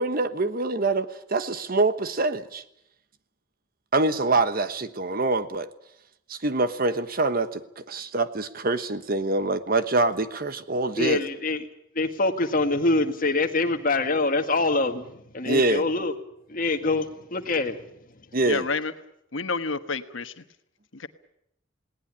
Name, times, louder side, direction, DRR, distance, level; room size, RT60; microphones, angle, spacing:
voice 1, 0.0-2.6 3.9-5.7 6.3-11.2 15.4-15.9 18.3-18.7, right 3 dB, 50° right, 12 dB, 1.2 m, -25 dB
voice 2, 11.0-11.6 12.0-15.1 15.3-16.1 16.5-17.8, left 2 dB, 45° left, 7 dB, 1.9 m, -24 dB
voice 3, 18.5-18.9 19.3-20.3 20.9-21.1, left 4 dB, 75° left, 10 dB, 1.3 m, -29 dB
19.5 x 18.5 x 9.8 m, 0.76 s
head